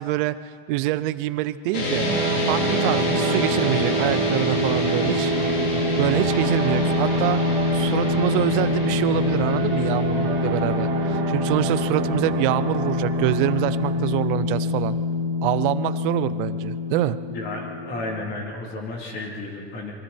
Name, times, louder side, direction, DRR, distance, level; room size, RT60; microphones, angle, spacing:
voice 1, 0.0-2.1 2.5-5.3 6.0-15.0 15.4-17.2, right 16 dB, 55° right, 15 dB, 0.5 m, -25 dB
sound 1, 1.7-18.1, left 2 dB, 50° left, 4.4 m, -24 dB
sound 2, 2.0-14.0, right 7 dB, 85° right, 2.7 m, -31 dB
voice 2, 17.3-19.9, left 2 dB, 30° left, 0 dB, 3.2 m, -33 dB
27.0 x 23.5 x 4.4 m, 2.3 s
supercardioid pair, 170°, 31 cm